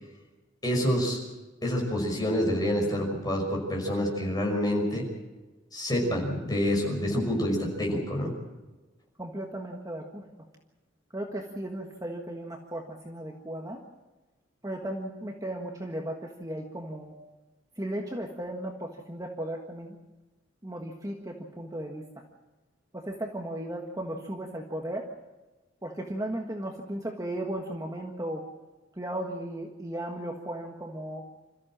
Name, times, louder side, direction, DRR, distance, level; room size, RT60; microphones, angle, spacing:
voice 1, 0.6-1.2 1.6-5.1 5.7-8.3, equal, 20° left, -1 dB, 5.7 m, -27 dB
voice 2, 9.2-10.2 11.1-13.8 14.6-17.2 17.8-20.0 20.6-22.0 22.9-25.1 25.8-28.4 29.0-31.3, right 1 dB, 15° right, 1 dB, 1.6 m, -36 dB
27.0 x 14.5 x 7.5 m, 1.2 s
head